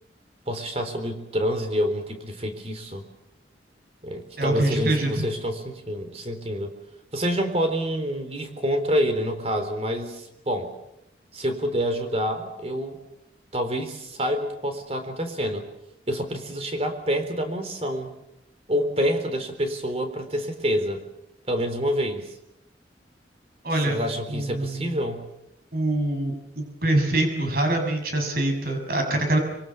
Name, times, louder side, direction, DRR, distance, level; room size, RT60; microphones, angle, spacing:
voice 1, 0.5-3.0 4.0-6.7 7.1-10.7 11.3-13.0 13.5-15.6 16.1-18.1 18.7-21.0 21.5-22.3 23.8-25.3, equal, 35° right, 7 dB, 3.9 m, -27 dB
voice 2, 4.4-5.3 23.6-24.0 24.3-25.0 25.7-29.4, right 1 dB, 55° right, 5 dB, 7.0 m, -24 dB
26.0 x 25.0 x 7.2 m, 0.85 s
head